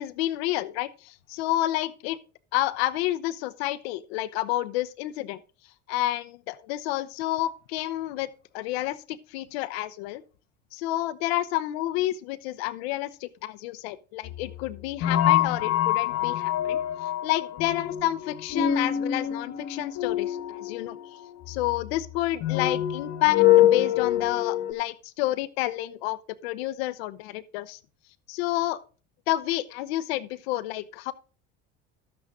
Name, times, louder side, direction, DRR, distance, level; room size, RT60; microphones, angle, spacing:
voice 1, 0.0-2.2 2.5-5.4 5.9-8.3 8.5-10.2 10.7-21.0 21.5-27.8 28.3-28.8 29.3-31.1, left 15 dB, 85° left, 0.9 m, -29 dB
sound 1, 14.3-24.7, left 12 dB, 55° left, 1.5 m, -25 dB
12.0 x 8.5 x 3.7 m
supercardioid pair, 95°, 30 cm